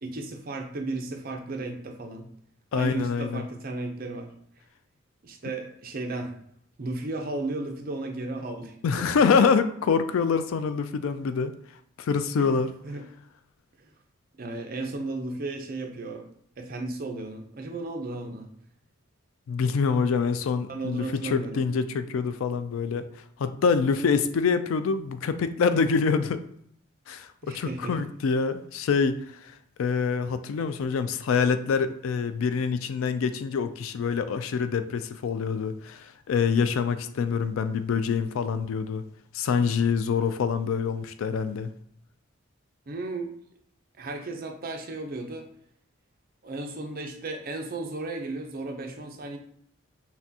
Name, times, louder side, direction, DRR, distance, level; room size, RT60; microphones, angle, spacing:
voice 1, 0.0-2.3 2.7-4.3 5.2-6.4 6.8-9.2 12.4-13.0 13.8-13.9 14.4-16.3 16.6-18.5 20.7-21.6 27.4-28.0 42.9-43.3 44.0-45.5 46.4-49.4, right 2 dB, 45° right, 4 dB, 0.6 m, -34 dB
voice 2, 2.7-3.4 8.8-11.5 12.0-12.7 19.5-23.1 23.4-26.4 27.1-29.5 29.8-39.0 39.3-41.7, left 5 dB, 80° left, 11 dB, 0.3 m, -25 dB
5.8 x 2.2 x 2.7 m, 0.69 s
head